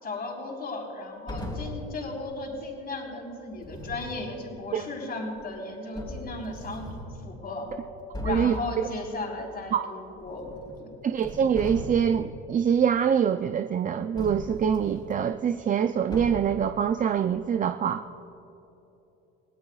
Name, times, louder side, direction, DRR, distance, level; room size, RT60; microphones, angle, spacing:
voice 1, 0.0-6.9 7.2-7.7 8.2-10.5 10.8-10.9, left 2 dB, 30° left, 0 dB, 3.9 m, -35 dB
sound 1, 1.3-1.9 3.5-4.2 5.4-5.5 5.9-7.2 7.7-7.8 8.1-8.6 10.2-10.8 11.1-12.2 14.2-15.1 16.1-16.6, left 2 dB, 15° left, 3.5 m, -38 dB
voice 2, 8.2-8.5 9.7-9.8 11.0-18.0, right 8 dB, 30° right, 8 dB, 0.4 m, -24 dB
24.0 x 17.5 x 2.4 m, 3.0 s
supercardioid pair, 95°, 29 cm